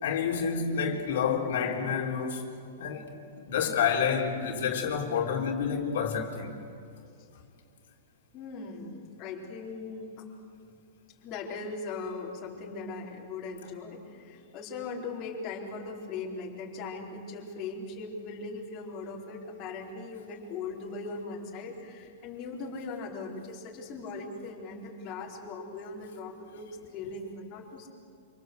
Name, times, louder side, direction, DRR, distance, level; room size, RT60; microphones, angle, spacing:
voice 1, 0.0-2.4 2.8-3.1 3.4-6.5, left 6 dB, 70° left, 4.0 m, -29 dB
voice 2, 8.3-10.3 11.2-27.9, left 3 dB, 30° left, 4.6 m, -39 dB
28.0 x 26.5 x 8.2 m
supercardioid pair, 160°, 0 cm